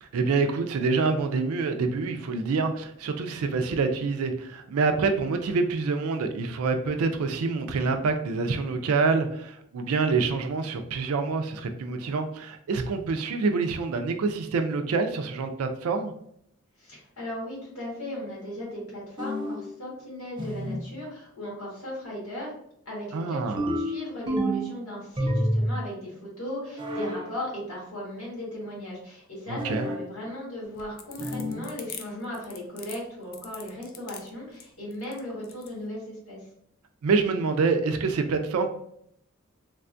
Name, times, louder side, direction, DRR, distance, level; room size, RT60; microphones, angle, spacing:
voice 1, 0.0-16.1 23.1-23.7 29.5-29.9 37.0-38.7, right 4 dB, 80° right, 6 dB, 0.4 m, -26 dB
voice 2, 16.8-22.5 22.8-36.4, left 1 dB, 80° left, -4 dB, 1.5 m, -37 dB
sound 1, 19.2-19.7 20.4-20.9 23.6-24.8 25.2-25.8 26.8-27.3 29.6-30.1 31.2-31.7, equal, 20° right, 0.5 m, -29 dB
sound 2, 30.6-35.8, left 8 dB, 45° left, 0.3 m, -43 dB
3.3 x 2.2 x 2.5 m, 0.71 s
head